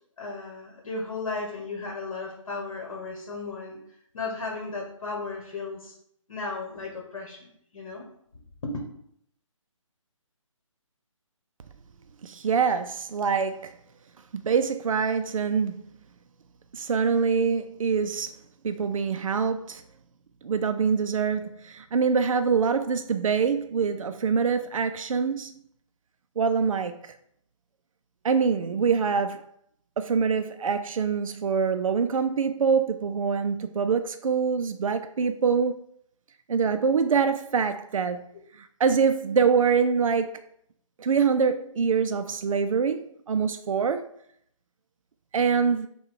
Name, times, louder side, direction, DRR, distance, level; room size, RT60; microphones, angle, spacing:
voice 1, 0.2-3.8 4.1-5.9 6.3-8.0 8.6-8.8, left 3 dB, 65° left, 1.3 m, -35 dB
voice 2, 12.2-13.7 14.3-15.8 16.7-18.3 18.6-19.8 20.4-25.5 26.4-27.2 28.2-29.5 30.0-35.8 36.5-38.2 38.5-40.4 41.0-44.0 45.3-45.9, right 6 dB, 80° right, 0.4 m, -25 dB
5.6 x 2.3 x 3.7 m
hypercardioid pair, 160°, 17 cm